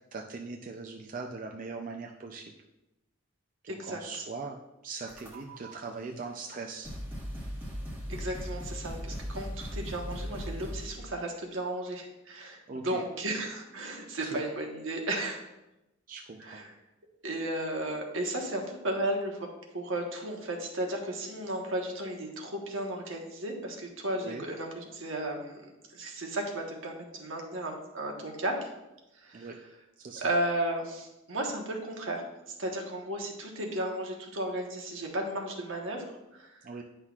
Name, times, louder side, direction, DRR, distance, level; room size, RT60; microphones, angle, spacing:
voice 1, 0.1-2.5 3.6-6.9 12.7-13.0 14.2-14.4 16.1-16.6 24.1-24.4 29.3-29.6 30.0-30.3 36.6-36.8, right 4 dB, 40° right, 2 dB, 0.4 m, -40 dB
voice 2, 3.7-4.2 8.1-15.5 16.4-16.7 17.2-19.4 19.7-28.7 29.1-29.5 30.2-36.7, right 1 dB, 75° right, 1 dB, 1.2 m, -34 dB
sound 1, 5.1-5.7 6.5-6.6 6.8-11.0, equal, 10° right, 1.2 m, -38 dB
9.7 x 5.7 x 2.4 m, 0.95 s
head